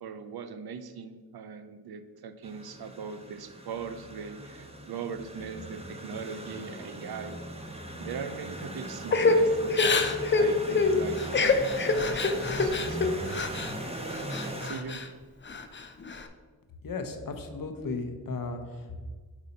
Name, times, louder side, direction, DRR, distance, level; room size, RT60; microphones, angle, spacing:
voice 1, 0.0-7.4 7.6-7.7 8.0-10.0 10.4-13.7 14.6-15.0, right 6 dB, 80° right, 10 dB, 0.5 m, -40 dB
sound 1, 2.4-14.7, right 1 dB, 15° right, 0.9 m, -39 dB
Crying sobbing / Breathing, 9.1-13.7 14.1-15.1 15.5-16.2, left 3 dB, 30° left, 0.5 m, -26 dB
voice 2, 16.8-19.0, left 3 dB, 60° left, 6 dB, 0.8 m, -35 dB
7.0 x 2.7 x 5.2 m, 1.5 s
cardioid pair, 60°, 37 cm